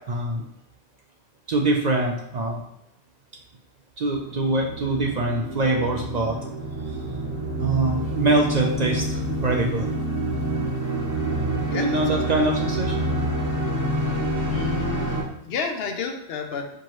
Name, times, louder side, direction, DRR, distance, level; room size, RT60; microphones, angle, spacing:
voice 1, 0.1-0.4 1.5-2.6 4.0-6.4 7.6-9.9 11.7-13.1, right 2 dB, 55° right, 0 dB, 0.5 m, -24 dB
sound 1, 4.1-15.2, right 1 dB, 20° right, 0.7 m, -27 dB
voice 2, 11.7-12.5 14.0-16.7, left 5 dB, 70° left, 5 dB, 0.8 m, -32 dB
4.5 x 2.9 x 3.0 m, 0.81 s
omnidirectional pair, 1.1 m